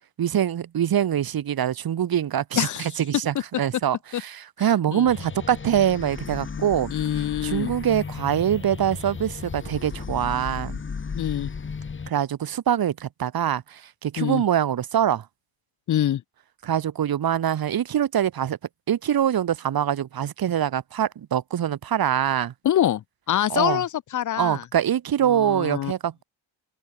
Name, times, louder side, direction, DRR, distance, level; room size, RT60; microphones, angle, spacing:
voice 1, 0.2-6.9 7.4-10.8 12.1-15.3 16.6-18.6 18.9-22.5 23.5-23.8 24.4-26.2, right 10 dB, 45° right, 1.6 m, -24 dB
voice 2, 2.6-2.9 4.1-4.2 4.9-5.1 6.9-7.7 11.1-11.5 14.2-14.4 15.9-16.2 22.6-24.6 25.3-25.9, left 11 dB, 40° left, 0.6 m, -25 dB
sound 1, 5.0-12.1, left 5 dB, 25° left, 1.7 m, -35 dB
cardioid pair, 140°, 49 cm